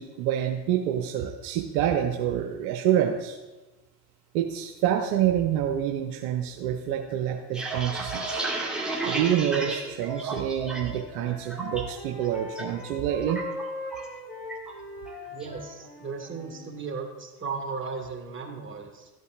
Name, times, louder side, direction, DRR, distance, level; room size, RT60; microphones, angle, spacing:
voice 1, 0.0-3.4 4.3-8.4 9.0-13.4, right 10 dB, 65° right, 4 dB, 0.8 m, -27 dB
sound 1, 7.3-11.0 11.3-11.8 12.2-12.6 12.9-14.2 14.5-14.7 15.1-15.5, right 3 dB, ahead, 1.8 m, -32 dB
Wind instrument woodwind instrument, 10.3-16.7, left 2 dB, 20° left, 3.0 m, -40 dB
voice 2, 15.3-19.1, right 4 dB, 25° right, 2 dB, 1.8 m, -36 dB
13.5 x 8.1 x 2.4 m, 1.1 s
figure-of-eight pair, 65°, 47 cm